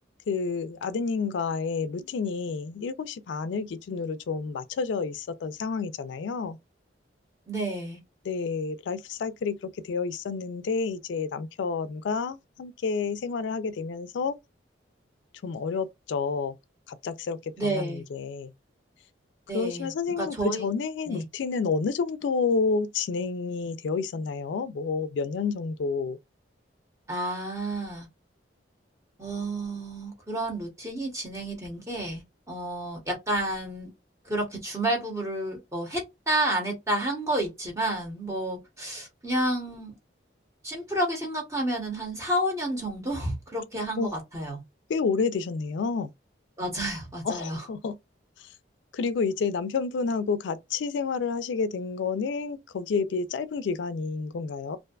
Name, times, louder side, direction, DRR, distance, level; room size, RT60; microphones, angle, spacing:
voice 1, 0.3-6.6 8.3-14.4 15.4-16.6 16.9-18.5 19.5-26.2 44.0-44.2 44.9-46.1 47.2-47.9 48.4-48.5 48.9-54.8, left 5 dB, 70° left, 0.3 m, -29 dB
voice 2, 7.5-8.0 17.6-18.0 19.5-19.9 20.2-20.7 21.1-21.2 27.1-28.1 29.2-33.9 34.2-39.9 40.6-44.6 46.6-47.7, right 1 dB, 15° right, 0.9 m, -30 dB
2.5 x 2.2 x 2.3 m
head